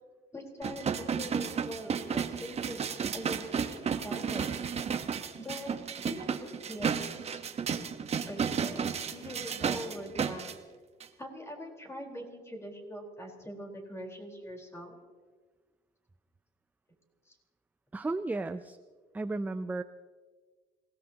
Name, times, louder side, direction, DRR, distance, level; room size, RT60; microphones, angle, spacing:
voice 1, 0.3-2.8 3.1-4.6 5.4-5.7 6.0-7.0 7.3-7.4 8.2-10.5 11.2-15.0 17.3-17.4, equal, 15° left, 0 dB, 4.2 m, -43 dB
sound 1, 0.6-10.5 11.0-11.1, right 6 dB, 40° right, 1.1 m, -33 dB
voice 2, 17.9-18.8 19.1-19.8, right 2 dB, 10° right, 10 dB, 0.5 m, -33 dB
27.0 x 18.0 x 2.9 m, 1.4 s
cardioid pair, 110°, 17 cm